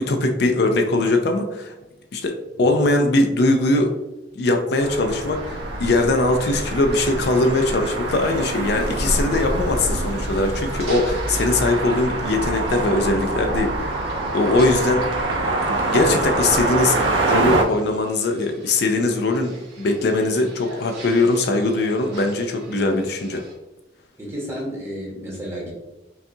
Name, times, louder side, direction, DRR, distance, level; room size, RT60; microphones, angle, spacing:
voice 1, 0.0-1.7 2.1-3.9 4.4-13.9 14.3-15.1 15.6-23.4, left 2 dB, 55° left, 4 dB, 0.4 m, -21 dB
sound 1, 4.8-23.5, equal, 60° right, 1.4 m, -44 dB
sound 2, 4.8-17.6, right 2 dB, 80° right, 0.7 m, -25 dB
voice 2, 24.2-25.7, equal, 15° right, -4 dB, 1.1 m, -31 dB
5.3 x 2.4 x 2.7 m, 1.0 s
head